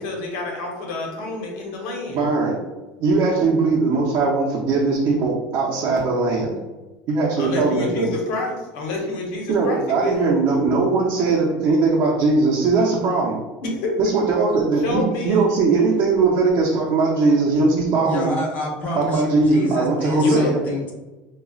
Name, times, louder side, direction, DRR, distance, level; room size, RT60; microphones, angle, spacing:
voice 1, 0.0-2.2 7.4-10.2 13.6-13.9 14.8-15.5 20.2-20.5, left 2 dB, 75° left, 0 dB, 1.0 m, -28 dB
voice 2, 2.1-2.6 3.0-6.5 7.1-8.1 9.5-13.4 14.0-18.3 19.0-20.6, right 3 dB, 50° right, -4 dB, 0.7 m, -20 dB
voice 3, 18.0-20.9, left 1 dB, 35° left, -2 dB, 1.0 m, -27 dB
5.0 x 2.3 x 2.4 m, 1.1 s
supercardioid pair, 130°, 5 cm